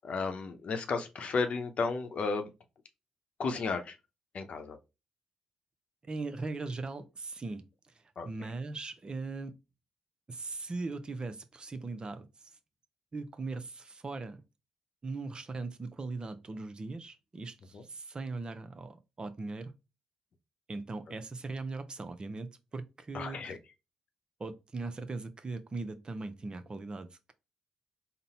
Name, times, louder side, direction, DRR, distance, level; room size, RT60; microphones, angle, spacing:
voice 1, 0.0-2.5 3.4-4.0 4.3-4.8 8.2-8.3 17.7-17.8 23.1-23.6, left 4 dB, 60° left, 0.8 m, -33 dB
voice 2, 6.0-7.6 8.2-9.5 10.3-12.3 13.1-14.4 15.0-19.7 20.7-23.4 24.4-27.3, right 3 dB, 35° right, 0.7 m, -39 dB
4.0 x 2.1 x 4.1 m
supercardioid pair, 50°, 2 cm